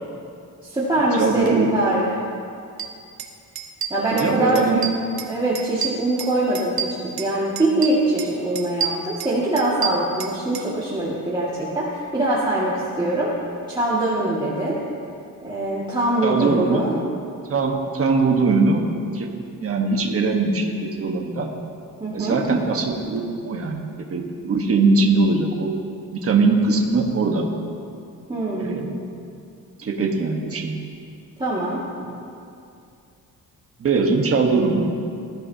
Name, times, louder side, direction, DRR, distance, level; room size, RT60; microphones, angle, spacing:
voice 1, 0.6-2.1 3.9-4.7 5.3-13.3 13.7-14.8 15.4-16.9 22.0-22.4 28.3-28.8 31.4-31.8, right 1 dB, 15° right, -9 dB, 1.9 m, -23 dB
voice 2, 1.2-1.8 4.1-4.8 16.2-17.1 17.5-18.9 19.1-19.3 19.6-21.5 22.1-23.8 24.1-25.7 26.1-27.4 28.6-29.0 29.8-30.9 32.0-32.1 33.8-34.9, right 3 dB, 40° right, 1 dB, 1.3 m, -21 dB
sound 1, 2.8-2.9 3.2-3.3 3.5-4.3 4.5-5.3 5.5-7.3 7.6-8.3 8.5-10.7, right 8 dB, 90° right, 1.2 m, -29 dB
20.0 x 13.5 x 2.8 m, 2.5 s
wide cardioid pair, 150°, 35 cm